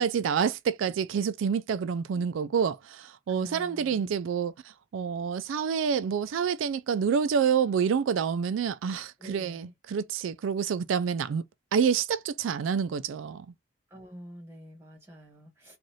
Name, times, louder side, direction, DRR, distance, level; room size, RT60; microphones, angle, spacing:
voice 1, 0.0-11.4 11.7-13.5, right 7 dB, 85° right, 0.3 m, -28 dB
voice 2, 3.3-4.2 9.2-9.7 13.9-15.8, equal, 10° right, 1.6 m, -47 dB
4.0 x 2.4 x 3.1 m
head